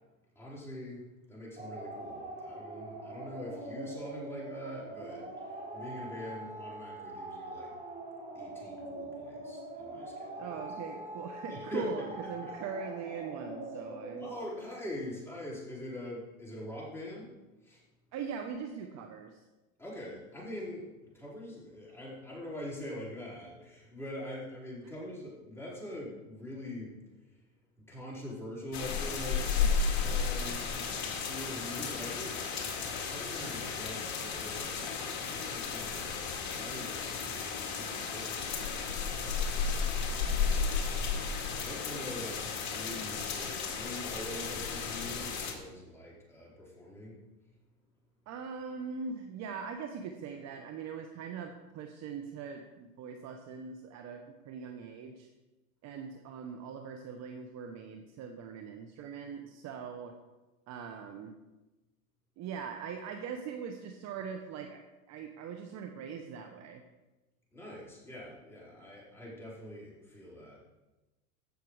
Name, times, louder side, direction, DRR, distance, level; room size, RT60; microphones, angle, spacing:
voice 1, 0.3-1.0 1.3-7.7 8.3-10.7 11.5-11.9 12.4-12.5 14.2-17.3 17.6-17.8 19.8-20.9 21.1-26.9 27.2-27.4 27.9-32.4 32.9-36.0 36.5-39.2 40.4-40.6 41.6-47.2 67.5-70.6, left 1 dB, 5° left, -6 dB, 4.5 m, -44 dB
sound 1, 1.6-14.3, right 2 dB, 15° right, 3.1 m, -43 dB
voice 2, 10.4-14.3 18.1-19.4 48.3-55.3 55.8-60.2 60.7-61.3 62.4-66.8, right 6 dB, 35° right, 5 dB, 1.1 m, -41 dB
sound 2, 28.7-45.5, left 5 dB, 40° left, 2.3 m, -33 dB
15.5 x 6.5 x 4.9 m, 1.1 s
hypercardioid pair, 120°, 44 cm